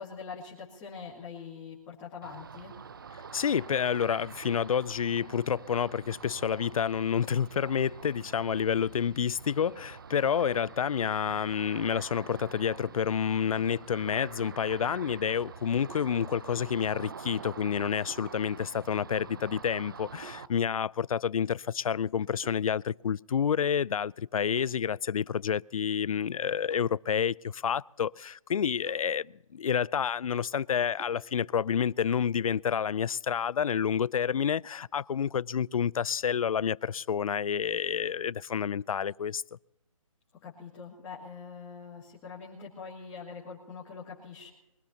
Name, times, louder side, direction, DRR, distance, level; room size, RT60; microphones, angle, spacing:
voice 1, 0.0-2.7 40.4-44.5, left 5 dB, 10° left, 2.3 m, -43 dB
Ocean, 2.2-20.5, right 6 dB, 40° right, 0.6 m, -46 dB
voice 2, 3.3-39.4, left 7 dB, 80° left, 0.4 m, -29 dB
sound 1, 15.9-16.2 18.1-18.4 20.2-20.5 22.4-22.7 24.6-24.9 26.7-27.0 28.9-29.2 31.0-31.3, right 3 dB, 60° right, 4.0 m, -52 dB
23.0 x 17.5 x 2.9 m
hypercardioid pair, 170°, 18 cm